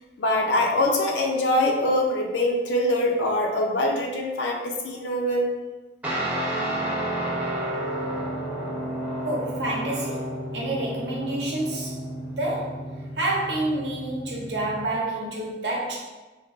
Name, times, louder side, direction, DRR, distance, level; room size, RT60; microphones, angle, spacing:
voice 1, 0.2-5.5, left 1 dB, 90° left, 1 dB, 0.5 m, -23 dB
Guitar, 6.0-15.0, right 1 dB, 10° right, 0.4 m, -31 dB
voice 2, 9.2-11.9 12.4-12.8 13.2-16.0, right 1 dB, 85° right, -4 dB, 0.8 m, -28 dB
3.3 x 2.4 x 2.3 m, 1.2 s
head